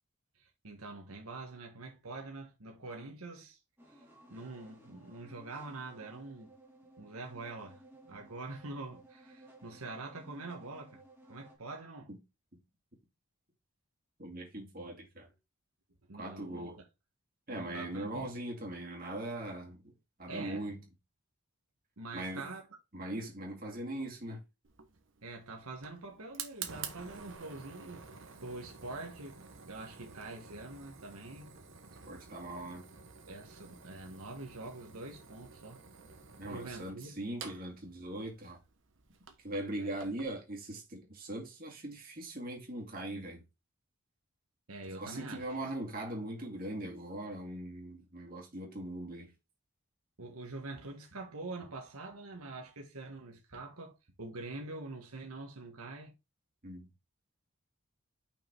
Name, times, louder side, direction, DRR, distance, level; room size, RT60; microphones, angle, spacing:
voice 1, 0.4-3.6 3.9-4.0 4.3-6.5 7.0-11.0 11.3-12.1 16.1-16.8 17.5-18.3 20.3-20.7 22.0-22.6 25.2-28.1 28.4-29.4 29.6-31.5 33.3-35.8 36.5-37.2 39.8-40.0 44.7-45.6 50.2-56.2, right 2 dB, 80° right, 1.5 m, -45 dB
sound 1, 3.8-11.6, right 1 dB, 10° right, 2.0 m, -57 dB
voice 2, 14.2-15.3 16.2-16.8 17.5-19.9 20.2-20.8 22.1-22.5 22.9-24.4 32.1-32.9 36.4-38.6 39.4-43.4 45.0-49.3 56.6-56.9, right 1 dB, 40° right, 2.3 m, -40 dB
Fire, 24.6-40.3, right 6 dB, 55° right, 1.2 m, -50 dB
5.7 x 5.1 x 4.6 m
head